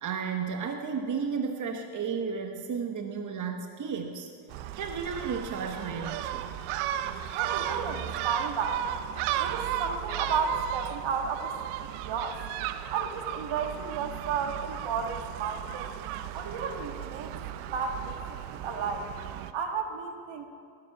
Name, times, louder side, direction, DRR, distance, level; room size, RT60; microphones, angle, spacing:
voice 1, 0.0-4.3 4.7-6.5, right 6 dB, 35° right, 5 dB, 1.1 m, -33 dB
Gull seagull, 4.5-19.5, right 11 dB, 80° right, 0.8 m, -35 dB
voice 2, 7.3-8.8 9.4-12.4 12.9-15.9 16.3-17.3 17.7-18.2 18.5-19.1 19.5-20.5, right 5 dB, 60° right, 5 dB, 1.6 m, -33 dB
18.0 x 7.9 x 6.0 m, 2.3 s
supercardioid pair, 75°, 50 cm